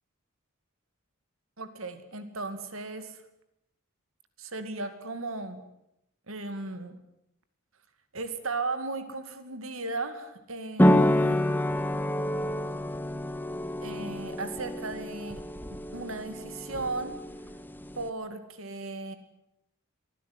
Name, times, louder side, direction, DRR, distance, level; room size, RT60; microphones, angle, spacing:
voice 1, 1.6-3.2 4.4-5.6 6.3-7.0 8.1-11.5 13.8-15.4 15.7-17.1 17.9-19.1, right 3 dB, 75° right, 10 dB, 2.4 m, -36 dB
sound 1, 10.8-18.1, left 1 dB, 10° left, 1.3 m, -28 dB
24.0 x 16.0 x 9.5 m, 0.82 s
head